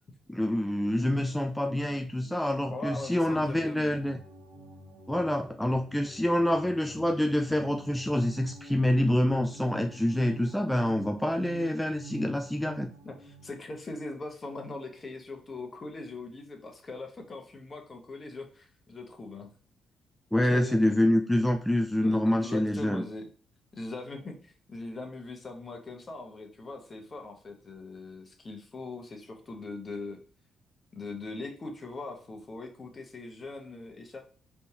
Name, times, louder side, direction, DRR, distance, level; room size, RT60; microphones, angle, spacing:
voice 1, 0.3-4.2 5.1-12.9 20.3-23.1, left 1 dB, 5° left, 5 dB, 0.4 m, -26 dB
sound 1, 0.9-13.5, right 3 dB, 45° right, 1.7 m, -48 dB
voice 2, 2.7-3.9 13.0-19.5 20.4-21.1 22.0-23.3 23.7-30.2 30.9-34.2, left 3 dB, 35° left, 4 dB, 1.2 m, -41 dB
4.3 x 3.5 x 2.8 m, 0.42 s
cardioid pair, 90°, 0 cm